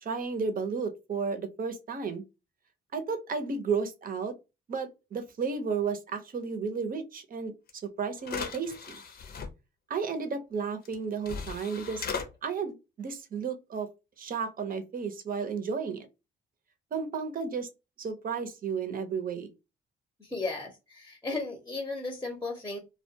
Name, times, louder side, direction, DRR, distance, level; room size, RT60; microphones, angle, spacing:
voice 1, 0.0-2.2 2.9-4.3 4.7-7.5 8.0-9.0 9.9-12.0 12.4-13.9 14.2-16.1 16.9-17.7 18.0-19.5, right 5 dB, 45° right, 0.7 m, -33 dB
sound 1, 7.7-7.8 8.2-9.5 10.8-10.9 11.2-12.3, left 6 dB, 50° left, 0.7 m, -37 dB
voice 2, 20.2-22.8, left 3 dB, 10° left, 0.8 m, -35 dB
2.3 x 2.2 x 2.7 m
cardioid pair, 90°, 20 cm